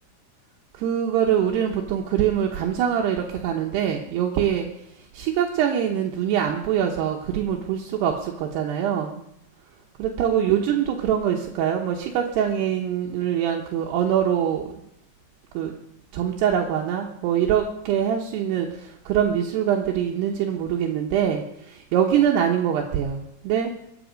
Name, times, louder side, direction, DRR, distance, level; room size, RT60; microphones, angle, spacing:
voice 1, 0.8-4.7 5.1-9.2 10.0-14.8 15.5-15.7 16.1-23.7, right 9 dB, 75° right, 1 dB, 3.1 m, -24 dB
23.0 x 8.9 x 5.2 m, 0.75 s
omnidirectional pair, 5.0 m